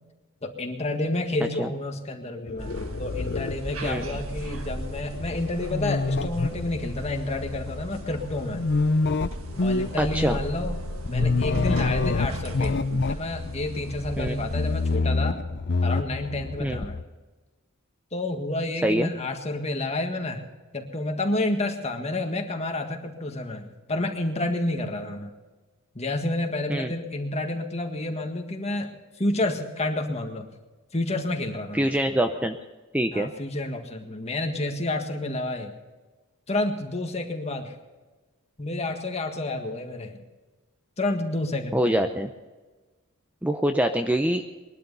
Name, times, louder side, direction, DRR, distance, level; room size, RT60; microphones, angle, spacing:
voice 1, 0.4-8.6 9.6-10.8 11.1-12.8 13.1-15.4 15.8-17.0 18.1-20.4 20.7-25.3 26.0-30.5 30.9-32.2 33.1-35.8 36.5-37.8 38.6-40.2 41.0-42.0, left 2 dB, 30° left, 4 dB, 1.7 m, -29 dB
sound 1, 2.5-17.0, left 3 dB, 55° left, 0.6 m, -28 dB
sound 2, 2.6-15.0, right 1 dB, 80° right, 1.5 m, -37 dB
voice 2, 10.0-10.4 14.2-14.4 16.6-16.8 18.8-19.1 26.7-26.9 31.7-32.6 32.9-33.3 41.7-42.3 43.4-44.4, right 1 dB, 5° right, 7 dB, 0.6 m, -24 dB
21.0 x 12.0 x 5.5 m, 1.3 s
head